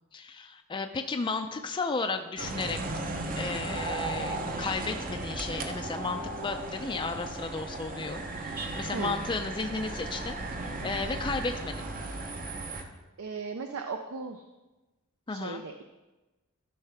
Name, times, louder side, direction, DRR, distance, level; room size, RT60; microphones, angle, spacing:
voice 1, 0.1-2.8 3.3-10.4 10.6-11.9 15.3-15.6, left 4 dB, 20° left, 5 dB, 0.4 m, -34 dB
sound 1, 2.4-12.8, right 2 dB, 40° right, 0.8 m, -36 dB
voice 2, 13.2-14.4 15.3-15.8, right 4 dB, 65° right, 5 dB, 0.5 m, -36 dB
12.5 x 5.5 x 3.4 m, 1.1 s
head